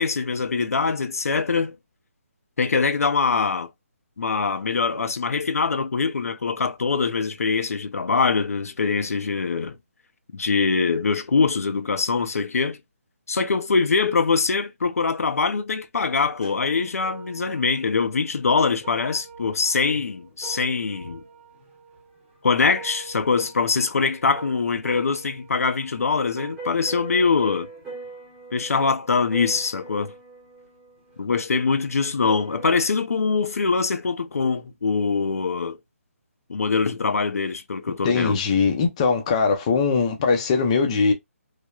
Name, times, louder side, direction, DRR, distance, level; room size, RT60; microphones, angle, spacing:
voice 1, 0.0-1.7 2.6-3.7 4.2-9.8 10.3-12.8 13.3-21.2 22.4-27.7 28.5-30.1 31.2-35.8 36.5-38.4, left 4 dB, 85° left, 0.5 m, -23 dB
sound 1, 16.1-18.4 18.7-31.6 32.0-32.8, right 4 dB, 10° right, 1.0 m, -43 dB
voice 2, 38.0-41.1, left 5 dB, 25° left, 0.5 m, -21 dB
3.1 x 2.1 x 2.3 m
hypercardioid pair, 165°, 8 cm